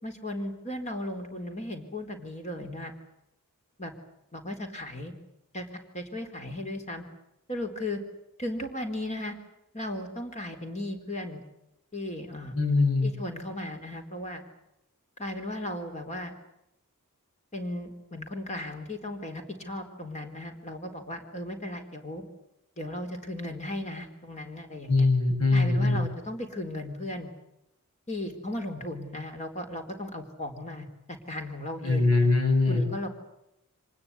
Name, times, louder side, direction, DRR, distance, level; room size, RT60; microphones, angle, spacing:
voice 1, 0.0-2.9 3.8-3.9 4.3-5.2 5.5-5.7 5.9-7.0 7.5-8.0 8.4-9.4 9.7-11.4 11.9-12.6 13.0-14.4 15.2-16.3 17.5-22.2 22.8-25.1 25.5-27.3 28.1-32.3 32.7-33.1, left 1 dB, 30° left, 6 dB, 4.1 m, -36 dB
voice 2, 12.5-13.1 24.9-26.0 31.8-32.8, left 3 dB, 70° left, 4 dB, 7.9 m, -22 dB
25.5 x 20.0 x 9.7 m, 0.84 s
head